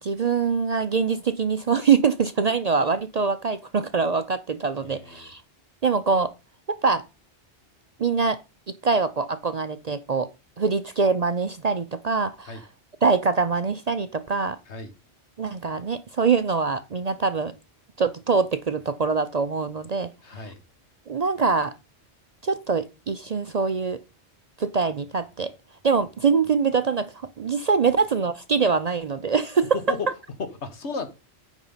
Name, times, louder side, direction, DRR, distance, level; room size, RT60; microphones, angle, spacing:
voice 1, 0.0-5.4 5.8-6.3 6.7-7.0 8.0-8.4 8.7-10.3 10.6-12.7 13.0-14.6 15.4-17.5 18.0-20.1 20.4-20.5 21.1-21.7 22.4-24.0 24.6-25.5 25.8-29.8, right 5 dB, 45° right, 0.5 m, -24 dB
voice 2, 4.8-5.3 12.5-12.6 14.7-14.9 20.2-20.6 29.9-30.1 30.4-31.1, left 4 dB, 75° left, 1.7 m, -34 dB
9.0 x 5.4 x 5.6 m
omnidirectional pair, 1.2 m